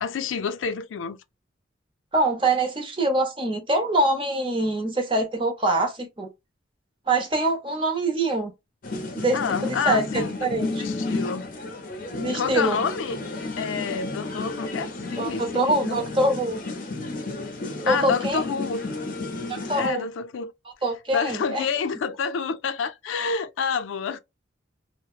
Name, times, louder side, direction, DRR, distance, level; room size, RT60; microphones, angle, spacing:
voice 1, 0.0-1.2 9.3-11.5 12.3-13.2 13.6-16.0 17.9-18.8 19.7-20.5 21.1-24.2, left 6 dB, 90° left, 0.4 m, -28 dB
voice 2, 2.1-6.3 7.1-8.5 9.1-10.8 12.2-12.8 15.2-16.6 17.8-18.4 19.5-20.1 20.8-21.7, right 2 dB, 25° right, 0.8 m, -24 dB
sound 1, 8.8-19.9, left 2 dB, 45° left, 0.6 m, -32 dB
2.8 x 2.0 x 2.3 m
head